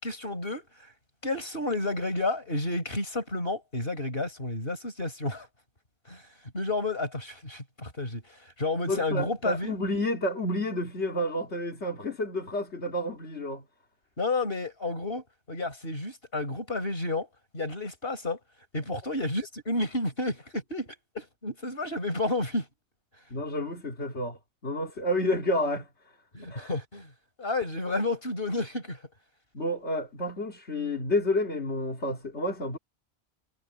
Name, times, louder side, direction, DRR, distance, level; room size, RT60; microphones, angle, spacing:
voice 1, 0.0-0.9 1.2-5.5 6.1-6.3 6.5-9.8 14.2-17.3 17.5-18.4 18.7-22.7 26.3-27.1 27.4-29.0, left 2 dB, 55° left, 5.7 m, -31 dB
voice 2, 8.8-13.6 23.3-25.9 26.5-26.7 29.5-32.8, left 1 dB, 70° left, 3.1 m, -30 dB
omnidirectional pair, 1.2 m